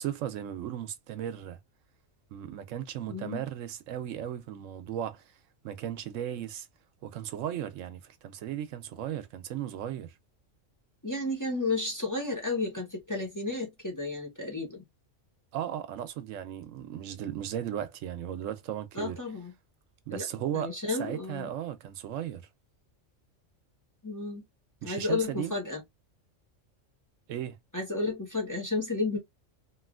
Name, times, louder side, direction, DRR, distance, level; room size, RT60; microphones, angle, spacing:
voice 1, 0.0-1.6 2.3-5.3 5.6-6.7 7.0-10.1 15.5-19.2 20.1-22.5 24.8-25.6 27.3-27.6, right 10 dB, 80° right, 0.9 m, -36 dB
voice 2, 3.1-3.4 11.0-14.8 18.9-19.5 20.1-20.3 20.5-21.5 24.0-24.4 24.8-25.8 27.7-29.2, left 3 dB, 15° left, 0.8 m, -32 dB
3.1 x 2.7 x 2.3 m
omnidirectional pair, 1.3 m